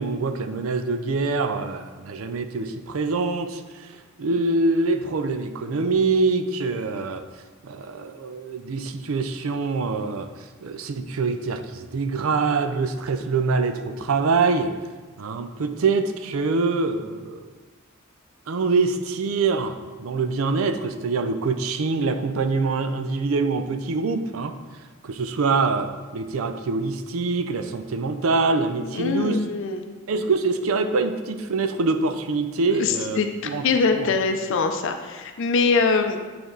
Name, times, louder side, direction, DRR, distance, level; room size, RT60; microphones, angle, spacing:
voice 1, 0.0-7.2 7.6-10.3 10.6-14.7 15.2-17.5 18.5-24.5 25.0-29.4 30.1-33.2 33.4-33.6 34.0-34.1, right 4 dB, 85° right, 9 dB, 0.5 m, -24 dB
voice 2, 28.8-29.9 32.7-36.2, left 4 dB, 65° left, 6 dB, 0.5 m, -23 dB
8.6 x 3.4 x 3.9 m, 1.3 s
head